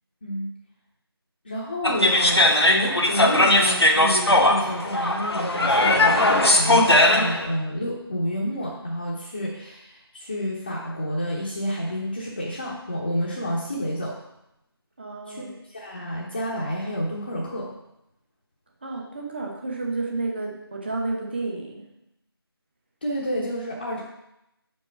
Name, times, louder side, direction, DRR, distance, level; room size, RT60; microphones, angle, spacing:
voice 1, 1.4-14.2 15.3-17.7 23.0-24.0, equal, 25° left, -6 dB, 0.9 m, -29 dB
sound 1, 1.8-7.5, left 1 dB, 75° left, 1.3 m, -19 dB
voice 2, 15.0-15.5 18.8-21.9, right 3 dB, 25° right, 0 dB, 1.0 m, -31 dB
5.3 x 5.2 x 5.7 m, 0.85 s
figure-of-eight pair, 165°, 13 cm